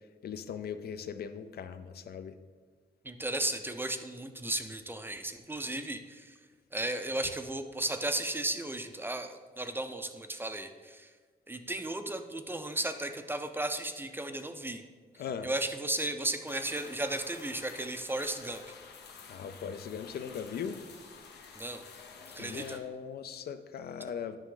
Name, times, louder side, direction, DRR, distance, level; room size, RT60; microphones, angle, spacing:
voice 1, 0.2-2.4 15.2-15.5 19.3-20.8 22.4-24.4, left 7 dB, 70° left, 10 dB, 0.5 m, -39 dB
voice 2, 3.0-6.4 6.7-11.1 11.5-14.8 15.4-18.6 21.6-21.8 22.3-22.8, right 1 dB, 10° right, 7 dB, 0.4 m, -35 dB
sound 1, 16.5-22.8, left 5 dB, 85° left, 0.9 m, -50 dB
9.0 x 5.9 x 3.8 m, 1.5 s
wide cardioid pair, 130°, 17 cm